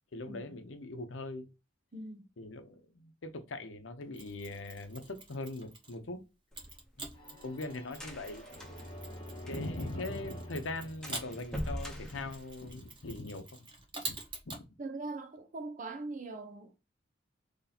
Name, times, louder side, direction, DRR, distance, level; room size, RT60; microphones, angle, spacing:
voice 1, 0.1-1.5 2.4-6.2 7.0-7.1 7.4-8.4 9.4-13.7 14.0-14.1 14.5-14.7, left 2 dB, 80° left, 0.7 m, -41 dB
voice 2, 1.9-2.2 14.8-16.8, right 3 dB, 45° right, 0.7 m, -41 dB
Mechanisms, 4.1-6.0 6.5-14.6, right 3 dB, 25° right, 1.0 m, -47 dB
sound 1, 6.5-9.9 10.2-10.3 10.6-10.7 11.0-13.1, equal, 5° left, 0.9 m, -42 dB
sound 2, 7.1-11.9, equal, 25° left, 1.2 m, -47 dB
3.0 x 2.8 x 3.9 m
head